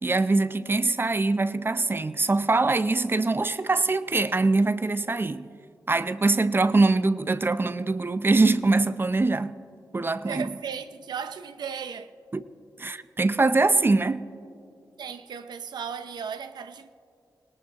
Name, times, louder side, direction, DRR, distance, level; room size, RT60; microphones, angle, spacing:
voice 1, 0.0-5.5 5.9-9.6 9.9-10.5 12.3-12.4 12.8-14.3, right 3 dB, 30° right, 0.6 m, -23 dB
voice 2, 10.2-12.1 15.0-16.9, right 7 dB, 80° right, 0.7 m, -36 dB
24.5 x 18.5 x 2.9 m
cardioid pair, 55°, 7 cm